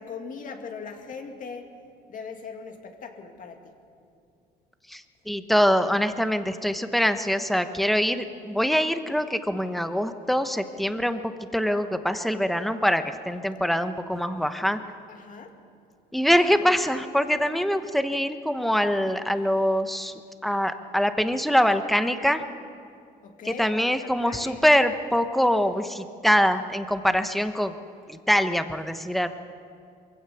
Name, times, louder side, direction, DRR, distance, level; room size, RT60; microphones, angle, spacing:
voice 1, 0.0-1.7 2.1-3.7 15.1-15.6 23.2-24.6, left 5 dB, 50° left, 4 dB, 2.3 m, -40 dB
voice 2, 5.3-14.8 16.1-20.1 20.4-22.4 23.4-27.7 28.1-29.3, equal, ahead, 9 dB, 1.1 m, -24 dB
22.5 x 16.5 x 7.1 m, 2.4 s
cardioid pair, 110°, 17 cm